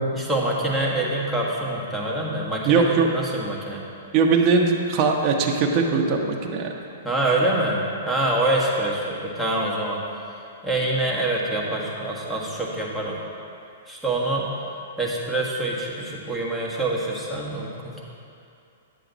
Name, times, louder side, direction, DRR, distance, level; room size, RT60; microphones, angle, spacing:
voice 1, 0.1-3.8 7.0-10.0 10.6-13.2 13.9-14.5 15.0-18.0, right 2 dB, ahead, -5 dB, 1.5 m, -25 dB
voice 2, 2.6-3.1 4.1-6.7, right 4 dB, 35° right, 1 dB, 1.0 m, -20 dB
10.5 x 7.5 x 4.1 m, 2.6 s
hypercardioid pair, 135°, 0 cm